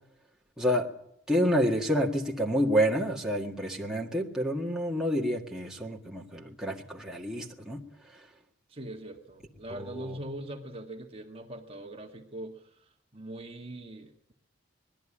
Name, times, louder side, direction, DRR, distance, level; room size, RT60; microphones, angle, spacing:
voice 1, 0.6-0.9 1.3-7.8 9.7-10.1, equal, 5° right, -2 dB, 1.8 m, -28 dB
voice 2, 8.7-12.6 13.1-14.3, right 1 dB, 30° right, 3 dB, 1.6 m, -42 dB
20.5 x 13.0 x 10.0 m, 0.75 s
head